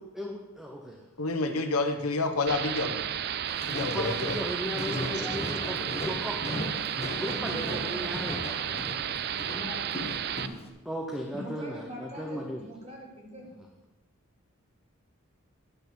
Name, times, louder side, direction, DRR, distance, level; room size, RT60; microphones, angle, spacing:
voice 1, 0.0-1.0 3.9-6.4 7.1-8.5 10.8-12.6, equal, ahead, -1 dB, 0.9 m, -36 dB
voice 2, 1.2-3.0 3.6-4.4, left 3 dB, 85° left, 6 dB, 1.1 m, -29 dB
sound 1, 2.5-10.5, right 9 dB, 50° right, 0.4 m, -33 dB
Walk footsteps, 3.5-10.7, left 2 dB, 30° left, 1.1 m, -38 dB
voice 3, 5.0-5.5 6.5-6.7 7.4-8.4 9.5-9.8 10.4-10.5 11.3-13.5, equal, 30° right, -1 dB, 2.8 m, -41 dB
10.5 x 6.3 x 7.0 m, 1.1 s
head